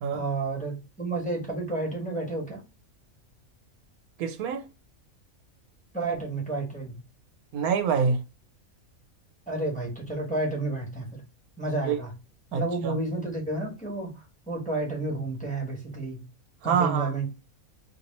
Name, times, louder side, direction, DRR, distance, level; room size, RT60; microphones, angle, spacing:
voice 1, 0.1-2.6 5.9-7.0 9.5-11.2 11.6-12.1 12.5-16.3 16.6-17.3, right 2 dB, 5° left, 1.1 m, -31 dB
voice 2, 4.2-4.7 7.5-8.2 11.9-12.0 12.5-12.9 16.6-17.1, right 6 dB, 90° right, 1.1 m, -26 dB
2.9 x 2.7 x 4.0 m
omnidirectional pair, 1.5 m